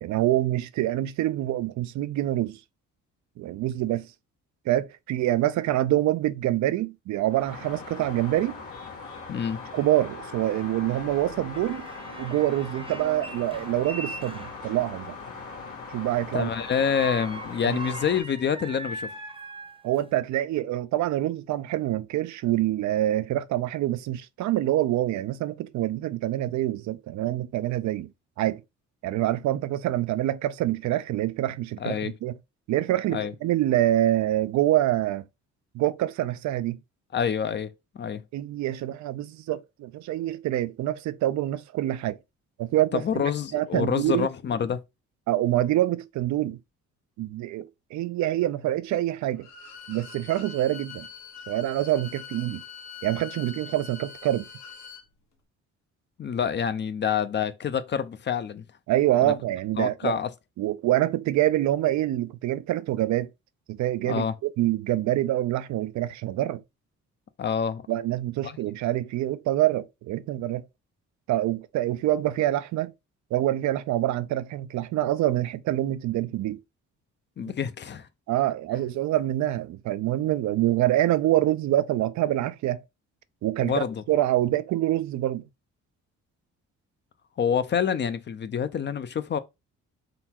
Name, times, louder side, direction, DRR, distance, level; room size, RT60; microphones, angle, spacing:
voice 1, 0.0-2.6 3.4-4.1 4.7-8.6 9.7-11.8 12.2-15.1 15.9-16.5 17.6-17.8 19.8-28.1 28.4-28.6 29.0-32.4 32.7-35.2 35.7-36.8 38.3-42.2 42.6-43.0 43.5-44.3 45.3-46.6 47.2-49.5 49.9-51.1 51.5-52.6 53.0-54.4 58.9-60.2 60.6-63.3 63.7-66.6 67.9-70.6 71.3-72.9 73.3-76.6 78.3-82.8 83.4-85.4, right 14 dB, 70° right, 0.4 m, -26 dB
sound 1, 7.3-18.2, left 4 dB, 85° left, 1.5 m, -40 dB
voice 2, 9.3-9.6 16.3-19.1 31.8-32.1 33.1-33.3 37.1-38.2 42.9-44.8 56.2-58.6 59.2-59.3 59.8-60.3 64.0-64.4 67.4-67.8 68.4-68.6 77.4-78.1 83.6-84.0 87.4-89.4, left 7 dB, 40° left, 0.5 m, -27 dB
sound 2, 11.5-15.0 16.5-20.2, right 3 dB, 20° right, 0.7 m, -41 dB
Bowed string instrument, 49.4-55.1, left 7 dB, 60° left, 1.0 m, -43 dB
3.8 x 2.3 x 4.3 m
cardioid pair, 90°, 30 cm